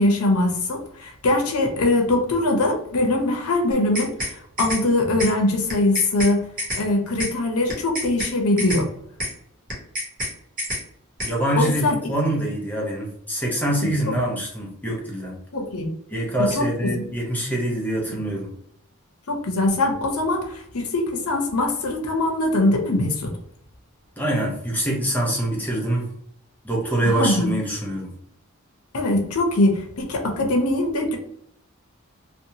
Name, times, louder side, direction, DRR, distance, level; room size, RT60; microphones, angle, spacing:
voice 1, 0.0-6.5 6.7-8.9 11.6-12.0 13.8-13.9 15.5-15.9 16.4-17.0 18.1-18.2 19.3-23.3 27.0-27.5 28.9-31.2, left 2 dB, 80° left, 2 dB, 0.7 m, -22 dB
sound 1, 3.7-4.3 4.6-4.8 5.2-5.3 5.7-6.3 6.6-6.8 7.2-7.3 7.7-8.3 8.6-8.8 9.2-9.3 9.7-10.3 10.6-10.8 11.2-11.3, equal, 35° right, 0.9 m, -28 dB
voice 2, 11.2-15.4 16.1-18.5 24.2-26.1 26.6-28.1, right 1 dB, 10° left, -2 dB, 0.6 m, -25 dB
2.7 x 2.2 x 2.7 m, 0.70 s
head